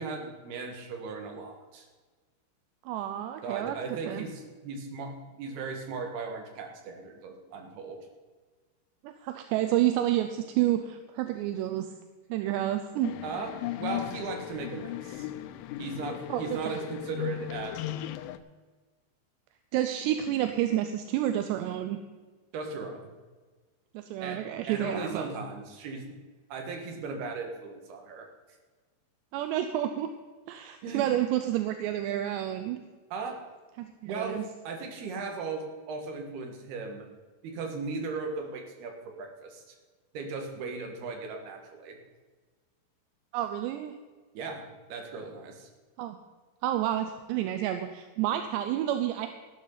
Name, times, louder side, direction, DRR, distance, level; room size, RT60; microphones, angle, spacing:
voice 1, 0.0-1.9 3.4-8.0 13.2-13.5 13.8-15.3 15.8-18.1 22.5-23.1 24.2-26.2 26.5-28.3 30.8-31.1 33.1-33.4 34.1-37.1 37.4-39.8 40.1-42.0 44.4-45.7, right 4 dB, 65° right, 3 dB, 3.6 m, -37 dB
voice 2, 2.9-3.8 4.1-4.2 9.0-11.9 12.3-13.1 16.3-16.8 19.7-22.0 23.9-25.3 29.3-30.1 30.5-32.8 33.8-34.4 43.3-44.0 46.0-46.2 46.6-49.3, right 12 dB, 80° right, 8 dB, 2.7 m, -29 dB
sound 1, 13.0-18.4, left 13 dB, 90° left, 3.1 m, -37 dB
16.0 x 12.0 x 4.0 m, 1.4 s
omnidirectional pair, 5.3 m